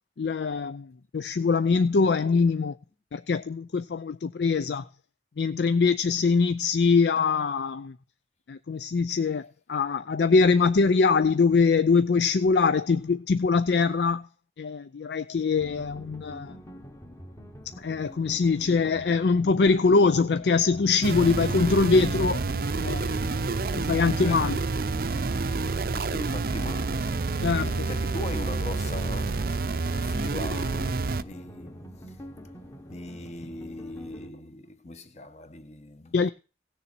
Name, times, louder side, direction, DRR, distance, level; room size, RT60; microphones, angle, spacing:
voice 1, 0.2-2.8 3.1-4.9 5.4-8.0 8.5-14.3 14.6-16.6 17.7-22.4 22.8-23.1 23.8-24.6 27.4-27.9 36.1-36.3, left 4 dB, 70° left, 0.4 m, -23 dB
sound 1, 15.6-34.3, equal, 15° left, 1.2 m, -45 dB
sound 2, 21.0-31.2, right 3 dB, 55° right, 0.6 m, -28 dB
voice 2, 22.7-23.9 24.2-24.5 25.4-32.3 32.8-36.1, left 2 dB, 40° left, 1.3 m, -41 dB
17.5 x 6.9 x 4.3 m
head